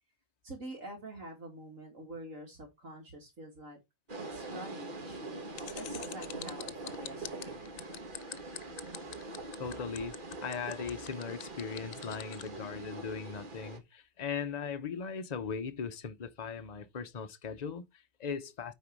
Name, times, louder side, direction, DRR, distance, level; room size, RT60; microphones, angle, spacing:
voice 1, 0.4-3.8 4.1-7.6, right 1 dB, 70° right, 2.8 m, -46 dB
sound 1, 4.1-13.8, right 2 dB, 40° right, 1.6 m, -43 dB
sound 2, 5.6-12.5, left 11 dB, 75° left, 1.1 m, -44 dB
voice 2, 9.6-18.7, left 6 dB, 35° left, 0.8 m, -39 dB
9.2 x 4.6 x 4.6 m
omnidirectional pair, 1.4 m